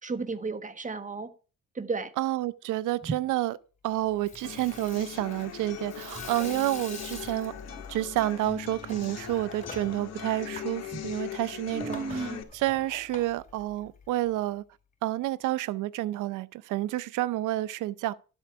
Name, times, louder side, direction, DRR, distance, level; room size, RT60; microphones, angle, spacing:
voice 1, 0.0-1.3 1.7-2.1 3.0-3.1 10.9-11.0 11.7-12.4, right 4 dB, 25° right, 1.3 m, -33 dB
voice 2, 2.2-3.6 3.8-7.5 7.9-14.6 15.0-18.1, right 15 dB, 90° right, 0.7 m, -29 dB
Water tap faucet / Sink (filling or washing), 4.1-14.3, left 3 dB, 25° left, 4.5 m, -46 dB
sound 1, 4.4-12.4, left 10 dB, 60° left, 2.0 m, -40 dB
12.0 x 8.0 x 4.9 m
cardioid pair, 90°, 30 cm